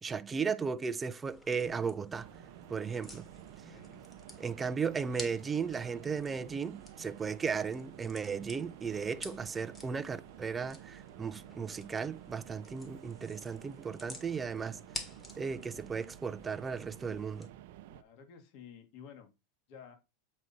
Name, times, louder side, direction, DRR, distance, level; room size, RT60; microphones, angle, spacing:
voice 1, 0.0-2.3 2.7-3.3 4.4-14.8 15.4-17.5, right 6 dB, 15° right, 0.5 m, -35 dB
sound 1, 1.3-17.5, left 2 dB, 15° left, 1.6 m, -51 dB
sound 2, 2.2-18.0, right 13 dB, 65° right, 0.6 m, -52 dB
voice 2, 3.6-4.1 17.9-19.3 19.7-19.9, left 7 dB, 50° left, 1.9 m, -52 dB
7.8 x 4.2 x 4.3 m
supercardioid pair, 130°, 0 cm